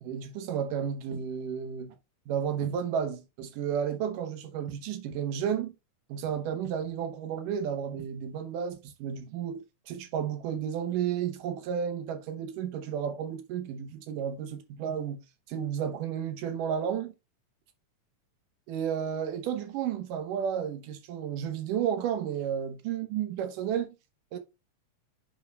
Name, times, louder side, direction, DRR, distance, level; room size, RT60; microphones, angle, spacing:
voice 1, 0.0-2.0 2.3-5.7 6.1-15.2 15.5-17.1 18.7-24.0 24.3-24.4, right 8 dB, 85° right, 2.6 m, -32 dB
8.9 x 5.9 x 2.3 m
omnidirectional pair, 3.7 m